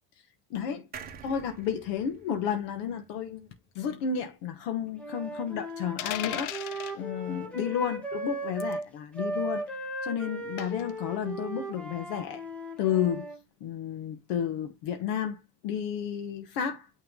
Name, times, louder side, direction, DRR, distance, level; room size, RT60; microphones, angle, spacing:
voice 1, 0.5-0.9 1.2-3.5 3.7-12.4 12.8-13.3 13.6-16.9, left 8 dB, 90° left, 1.4 m, -32 dB
sound 1, 0.9-4.4 4.8-4.9 5.1-5.2, right 7 dB, 25° right, 1.4 m, -49 dB
Wind instrument woodwind instrument, 4.9-8.9 9.1-13.4, right 1 dB, 5° left, 1.3 m, -37 dB
sound 2, 6.0-7.0 8.6-8.8 10.6-10.9, left 14 dB, 55° left, 0.6 m, -35 dB
9.2 x 3.6 x 3.8 m
cardioid pair, 175°, 38 cm